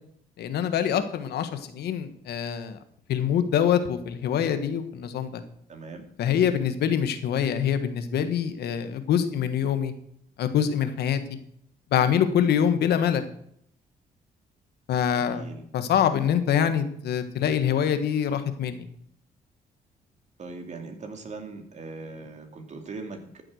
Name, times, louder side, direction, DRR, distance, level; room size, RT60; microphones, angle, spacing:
voice 1, 0.4-2.8 3.1-5.4 6.2-9.9 10.4-11.2 11.9-13.2 14.9-15.4 15.7-18.9, left 8 dB, 85° left, 10 dB, 1.3 m, -25 dB
voice 2, 5.7-6.1 15.1-15.6 20.4-23.4, right 3 dB, 45° right, 4 dB, 2.7 m, -40 dB
13.5 x 7.8 x 6.3 m, 0.69 s
cardioid pair, 100°, 16 cm